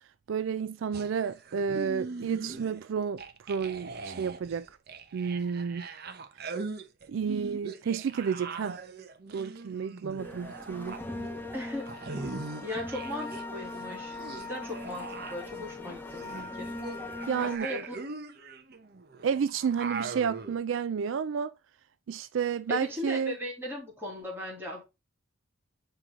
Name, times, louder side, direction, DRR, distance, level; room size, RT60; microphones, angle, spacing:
voice 1, 0.3-4.7 5.1-5.8 7.1-8.8 9.3-11.0 17.3-17.8 19.2-21.5 22.1-23.4, right 6 dB, 70° right, 0.3 m, -31 dB
sound 1, 0.9-2.9 3.2-13.4 13.7-20.6, right 3 dB, 50° right, 0.8 m, -41 dB
sound 2, 10.2-17.6, left 2 dB, 10° left, 0.8 m, -40 dB
voice 2, 11.5-11.9 12.6-16.8 17.4-17.9 22.7-24.8, left 1 dB, 10° right, 3.0 m, -38 dB
7.5 x 4.7 x 3.7 m
head